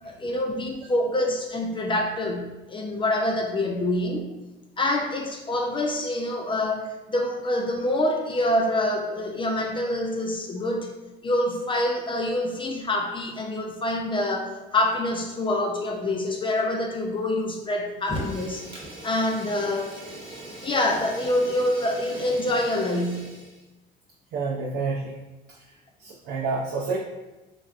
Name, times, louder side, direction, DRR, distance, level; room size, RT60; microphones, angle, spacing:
voice 1, 0.0-4.3 4.8-10.9 11.2-18.7 19.0-19.9 20.6-23.3, left 1 dB, 25° left, 2 dB, 0.4 m, -26 dB
Fire, 18.0-23.6, right 1 dB, 25° right, 1.0 m, -39 dB
voice 2, 24.3-25.2 25.5-25.6 26.0-27.0, right 4 dB, 60° right, -4 dB, 0.5 m, -29 dB
3.3 x 2.5 x 2.4 m, 1.1 s
cardioid pair, 95°, 19 cm